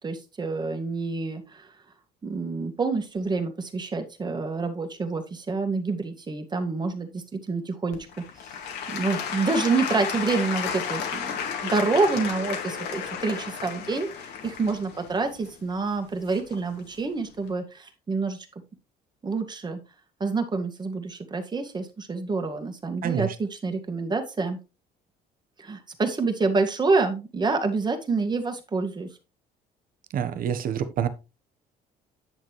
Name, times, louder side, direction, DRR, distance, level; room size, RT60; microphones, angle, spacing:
voice 1, 0.0-1.7 2.2-8.0 8.9-18.5 19.2-19.8 20.2-24.6 25.6-29.1, right 3 dB, 25° right, 5 dB, 1.9 m, -27 dB
Applause / Crowd, 7.9-16.8 17.4-17.5, left 7 dB, 80° left, 2.3 m, -33 dB
voice 2, 23.0-23.3 30.1-31.1, right 8 dB, 55° right, 11 dB, 1.2 m, -27 dB
9.9 x 6.7 x 3.2 m, 0.29 s
cardioid pair, 110°, 17 cm